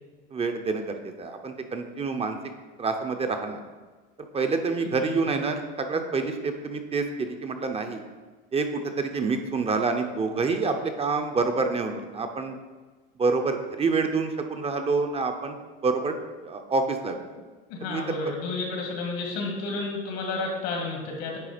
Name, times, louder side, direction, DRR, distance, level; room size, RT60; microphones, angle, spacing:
voice 1, 0.3-2.4 2.8-3.6 4.3-8.0 8.5-12.6 13.2-15.6 15.8-16.1 16.4-17.2 17.9-18.0, right 4 dB, 20° right, 6 dB, 0.6 m, -27 dB
voice 2, 4.8-5.2 17.7-21.4, left 3 dB, 80° left, 0 dB, 2.2 m, -31 dB
9.2 x 3.3 x 5.0 m, 1.3 s
supercardioid pair, 130°, 30 cm